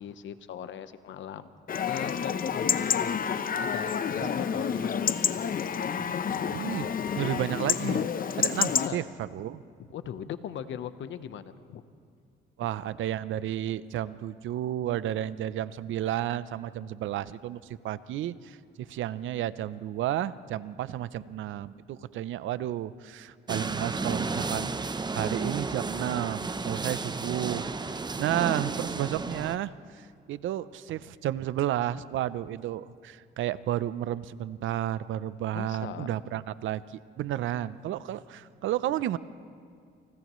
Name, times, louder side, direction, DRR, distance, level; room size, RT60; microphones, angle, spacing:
voice 1, 0.0-1.5 1.8-3.2 3.6-5.0 6.1-6.2 8.8-9.0 9.9-11.8 35.5-36.1, left 9 dB, 75° left, 11 dB, 1.0 m, -39 dB
Chatter / Livestock farm animals working animals / Chirp tweet, 1.7-8.9, left 7 dB, 45° left, 0.8 m, -29 dB
voice 2, 6.5-8.1 8.4-9.6 12.6-24.7 25.1-39.2, right 12 dB, 75° right, 16 dB, 0.6 m, -32 dB
sound 1, 23.5-29.6, right 3 dB, 20° right, 0.8 m, -33 dB
29.0 x 29.0 x 3.1 m, 2.3 s
cardioid pair, 90°, 20 cm